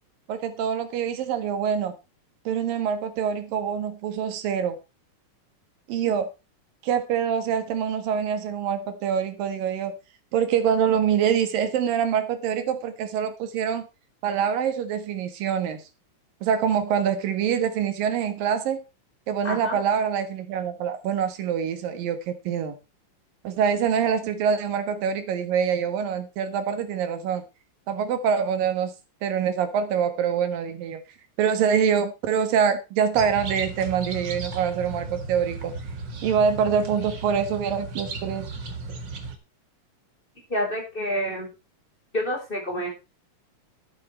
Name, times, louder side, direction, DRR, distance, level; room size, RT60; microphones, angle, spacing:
voice 1, 0.3-1.9 2.5-4.8 5.9-6.3 6.8-9.9 10.3-13.9 14.2-15.8 16.4-18.8 19.3-22.7 23.4-27.4 27.9-28.9 29.2-31.0 31.4-35.7 36.2-38.5, right 7 dB, 80° right, 9 dB, 3.3 m, -25 dB
voice 2, 19.4-19.8 40.5-41.5 42.1-42.9, equal, 15° left, 1 dB, 4.4 m, -28 dB
sound 1, 33.1-39.4, right 3 dB, 40° right, 1.8 m, -35 dB
11.0 x 9.6 x 4.4 m, 0.28 s
omnidirectional pair, 3.9 m